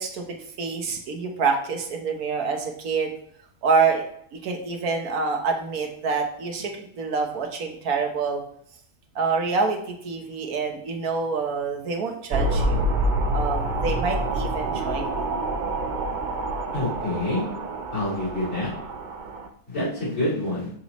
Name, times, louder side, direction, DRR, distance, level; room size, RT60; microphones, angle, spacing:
voice 1, 0.0-3.1 3.6-4.0 4.3-8.4 9.1-12.8 13.3-15.3, right 4 dB, 80° right, 2 dB, 1.4 m, -26 dB
sound 1, 12.3-19.5, right 1 dB, 60° right, 0.5 m, -27 dB
voice 2, 16.7-17.4 17.9-18.7 19.7-20.7, left 1 dB, 75° left, -11 dB, 3.5 m, -27 dB
6.2 x 5.5 x 3.0 m, 0.64 s
omnidirectional pair, 1.6 m